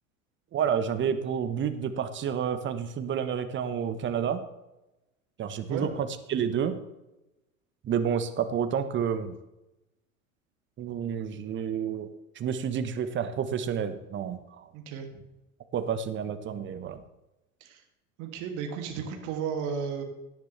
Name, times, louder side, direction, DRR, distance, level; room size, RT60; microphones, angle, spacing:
voice 1, 0.5-4.4 5.4-6.8 7.8-9.3 10.8-12.1 12.3-14.7 15.7-17.0, right 7 dB, 25° right, 10 dB, 1.2 m, -30 dB
voice 2, 14.7-15.1 17.6-17.8 18.2-20.0, right 6 dB, 45° right, 4 dB, 2.6 m, -33 dB
17.5 x 10.0 x 3.3 m, 0.96 s
figure-of-eight pair, 80°, 41 cm